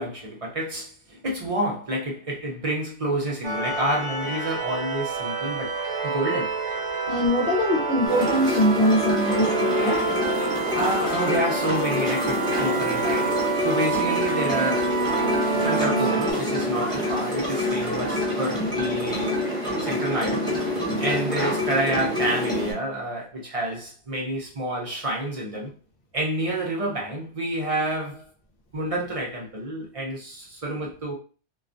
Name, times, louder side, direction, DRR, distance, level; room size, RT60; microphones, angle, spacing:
voice 1, 0.0-6.5 10.7-14.9 15.6-19.5 19.8-20.5 21.0-25.7 26.1-28.3 28.7-31.1, right 1 dB, 45° right, 0.5 m, -29 dB
sound 1, 3.4-16.3, right 4 dB, 75° right, 0.9 m, -27 dB
voice 2, 7.1-10.0, equal, 55° left, 0.8 m, -22 dB
sound 2, 8.1-22.7, left 1 dB, 5° left, 0.6 m, -27 dB
2.3 x 2.2 x 2.5 m
omnidirectional pair, 1.2 m